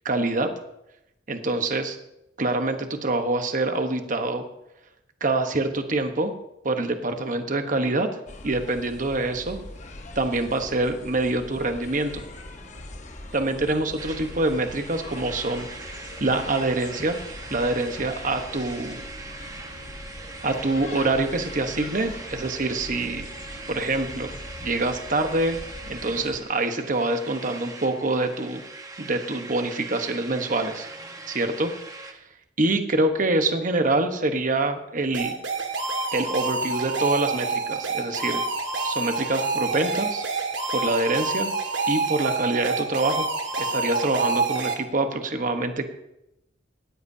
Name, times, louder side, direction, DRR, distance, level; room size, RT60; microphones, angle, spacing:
voice 1, 0.0-0.5 1.3-2.0 2.4-4.4 5.2-6.3 6.6-8.1 8.4-9.6 10.1-12.2 13.3-17.2 17.5-19.0 20.4-23.3 23.7-25.6 25.9-28.6 29.0-30.9 31.3-31.7 32.0-32.2 32.6-35.3 36.1-38.4 38.8-40.2 40.7-41.5 41.9-43.3 43.6-45.9, right 2 dB, 45° right, 6 dB, 1.1 m, -25 dB
sound 1, 8.3-26.4, left 2 dB, 40° left, 1.2 m, -42 dB
sound 2, 14.0-32.1, right 3 dB, 20° right, 1.1 m, -41 dB
sound 3, 35.1-44.7, right 3 dB, 80° right, 1.9 m, -27 dB
18.0 x 14.0 x 2.8 m, 0.87 s
head